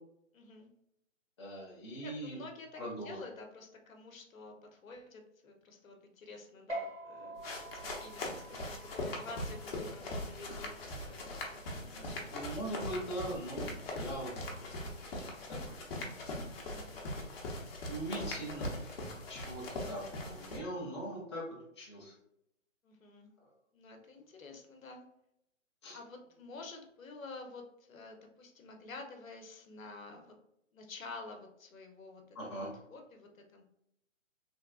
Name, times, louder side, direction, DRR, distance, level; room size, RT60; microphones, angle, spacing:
voice 1, 0.3-0.7 2.0-7.4 7.7-12.3 16.6-16.9 22.8-23.3 23.7-25.0 25.9-30.3 30.7-33.7, left 3 dB, 80° left, 4 dB, 0.9 m, -50 dB
voice 2, 1.4-2.4 2.8-3.2 11.9-14.6 15.1-15.6 16.5-16.6 17.9-18.7 19.3-22.1 25.8-26.0 32.3-32.7, right 1 dB, 20° left, -5 dB, 0.5 m, -41 dB
sound 1, 6.7-13.5, right 1 dB, 55° right, 1.3 m, -48 dB
sound 2, 7.4-20.6, left 1 dB, 45° left, 0.8 m, -41 dB
3.3 x 2.3 x 2.3 m, 0.79 s
hypercardioid pair, 160°, 39 cm